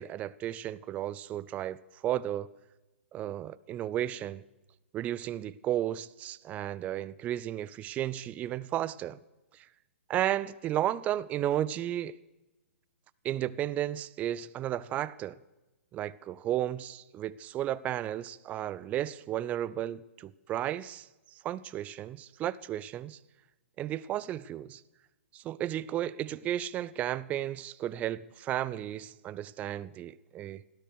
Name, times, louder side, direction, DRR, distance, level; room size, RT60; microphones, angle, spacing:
voice 1, 0.0-1.8 2.0-2.5 3.1-4.4 4.9-9.2 9.6-9.7 10.1-12.2 13.2-15.4 15.9-21.1 21.4-23.2 23.8-24.8 25.3-30.6, right 12 dB, 20° right, 0.4 m, -33 dB
17.0 x 13.0 x 6.5 m
figure-of-eight pair, 120°, 7 cm